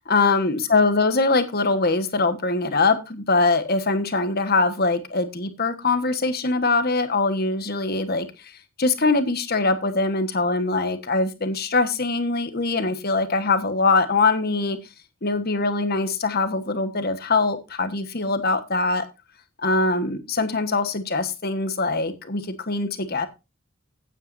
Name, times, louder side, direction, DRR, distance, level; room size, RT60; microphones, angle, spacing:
voice 1, 0.0-8.3 8.8-14.8 15.2-19.1 19.6-23.3, left 3 dB, 45° left, 1.4 m, -22 dB
15.5 x 9.2 x 2.6 m
head